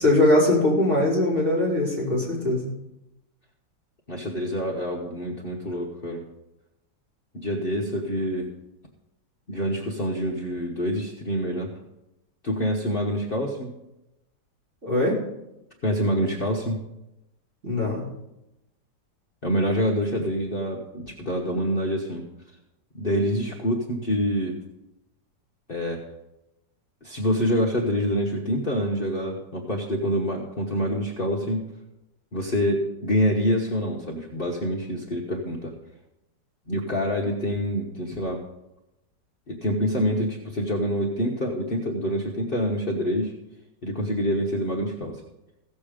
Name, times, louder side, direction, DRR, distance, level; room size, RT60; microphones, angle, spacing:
voice 1, 0.0-2.7 14.8-15.2 17.6-18.1, left 1 dB, 40° right, -5 dB, 3.8 m, -21 dB
voice 2, 4.1-6.2 7.3-8.5 9.5-11.7 12.4-13.8 15.8-16.8 19.4-22.3 22.9-24.6 25.7-26.0 27.0-31.6 32.3-35.7 36.7-38.4 39.5-43.3 43.8-45.2, equal, 35° left, -2 dB, 1.2 m, -26 dB
16.0 x 7.0 x 5.1 m, 0.91 s
omnidirectional pair, 1.9 m